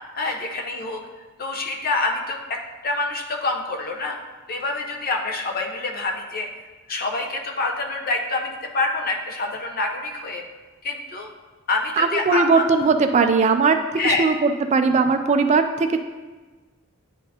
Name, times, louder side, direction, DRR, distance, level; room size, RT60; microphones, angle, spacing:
voice 1, 0.2-1.0 1.4-2.6 2.8-4.2 4.5-6.5 6.9-10.4 10.8-11.3 11.7-12.6 13.2-13.3 14.0-14.3, left 3 dB, 45° left, 2 dB, 0.7 m, -26 dB
voice 2, 12.0-13.8 14.0-16.0, right 4 dB, 35° right, 8 dB, 0.3 m, -19 dB
9.8 x 4.1 x 2.8 m, 1.3 s
head